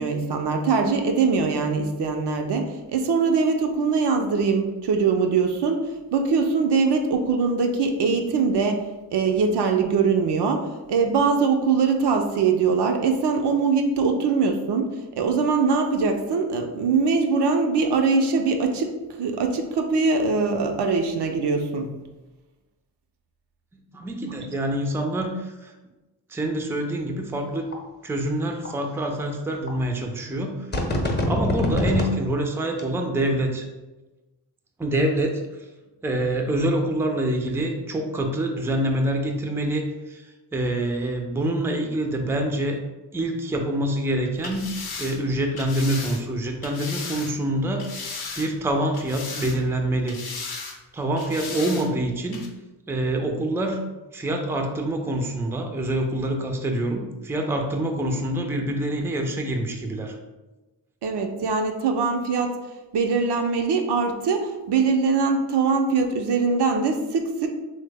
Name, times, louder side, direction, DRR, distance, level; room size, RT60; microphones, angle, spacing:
voice 1, 0.0-22.0 61.0-62.6 62.9-67.5, right 4 dB, 65° right, 4 dB, 0.5 m, -22 dB
voice 2, 23.7-25.7 26.3-27.7 28.0-30.7 31.3-33.7 34.8-35.4 36.0-40.2 40.5-42.8 43.1-44.7 45.0-47.9 48.4-50.2 50.9-52.4 52.9-53.8 54.1-60.2, right 1 dB, 5° right, 3 dB, 0.4 m, -26 dB
sound 1, 27.7-27.8 28.6-28.7 29.7-29.8 30.7-32.1 32.7-32.8, left 1 dB, 25° left, 0.7 m, -23 dB
sound 2, 44.3-47.3 47.8-48.7 48.9-49.8 50.1-50.8 51.2-51.9 52.3-52.5, left 4 dB, 60° left, 0.7 m, -36 dB
3.0 x 2.1 x 3.4 m, 1.1 s
cardioid pair, 45°, 43 cm